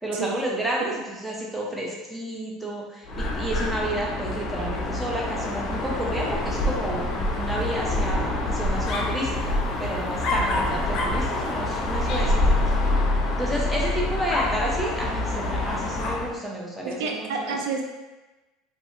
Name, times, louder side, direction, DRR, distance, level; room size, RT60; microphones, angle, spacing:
voice 1, 0.0-12.6 13.4-17.6, right 1 dB, 5° right, -4 dB, 0.6 m, -31 dB
Dog, 3.1-16.4, left 2 dB, 45° left, 0.4 m, -26 dB
voice 2, 16.8-17.8, right 4 dB, 90° right, 2 dB, 0.4 m, -29 dB
2.7 x 2.5 x 2.6 m, 1.1 s
supercardioid pair, 135°, 0 cm